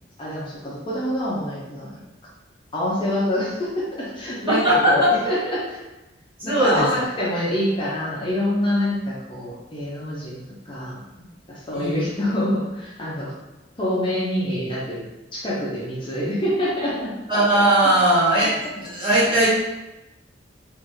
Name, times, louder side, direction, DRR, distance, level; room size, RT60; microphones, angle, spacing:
voice 1, 0.2-2.0 2.7-5.8 6.4-11.0 11.5-13.3 13.8-15.0 15.3-17.1, left 1 dB, 30° left, -6 dB, 0.7 m, -26 dB
voice 2, 4.5-5.1 6.4-7.0 11.7-12.1 17.3-19.5, right 1 dB, 30° right, -10 dB, 1.4 m, -19 dB
3.4 x 2.6 x 3.1 m, 1.0 s
head